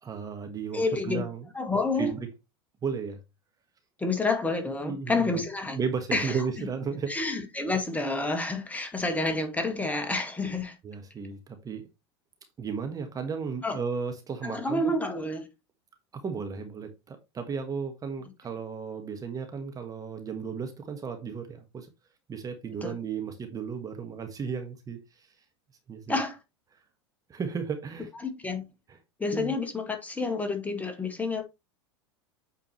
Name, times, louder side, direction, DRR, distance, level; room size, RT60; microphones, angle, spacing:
voice 1, 0.0-1.5 2.0-2.3 2.8-3.2 4.8-5.4 5.7-7.1 10.8-11.9 12.6-14.9 16.1-21.9 22.3-25.3 25.9-26.2 27.3-28.1 29.3-29.5, right 6 dB, 25° right, 1.4 m, -34 dB
voice 2, 0.7-1.2 1.5-2.1 4.0-5.8 6.1-6.7 7.1-10.8 13.6-13.8 14.4-15.5 22.8-22.9 26.1-26.4 28.2-28.6 29.2-31.4, left 3 dB, 10° left, 1.7 m, -29 dB
8.9 x 4.5 x 3.1 m
hypercardioid pair, 95°, 14 cm